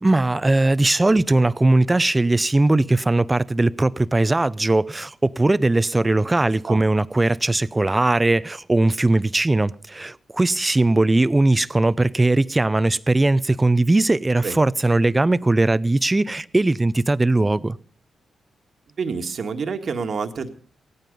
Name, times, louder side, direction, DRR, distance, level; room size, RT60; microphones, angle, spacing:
voice 1, 0.0-17.8, right 2 dB, 20° right, 0.6 m, -19 dB
voice 2, 19.0-20.5, right 5 dB, 60° right, 1.8 m, -28 dB
17.0 x 15.0 x 5.3 m
cardioid pair, 60°, 0 cm